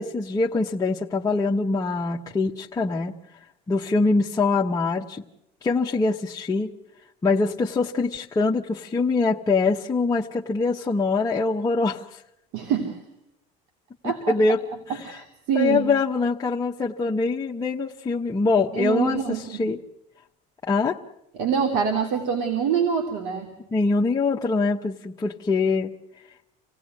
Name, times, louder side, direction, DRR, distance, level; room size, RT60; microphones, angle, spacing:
voice 1, 0.0-3.1 3.7-5.2 5.6-6.7 7.2-12.2 14.0-14.6 14.9-15.2 15.5-19.8 20.6-21.0 23.7-25.9, left 3 dB, 20° left, -2 dB, 1.0 m, -24 dB
voice 2, 12.5-13.0 14.0-14.3 15.0-15.9 18.5-19.6 21.4-23.5, right 7 dB, 75° right, 4 dB, 3.2 m, -25 dB
27.5 x 17.0 x 9.6 m, 0.84 s
cardioid pair, 135°, 19 cm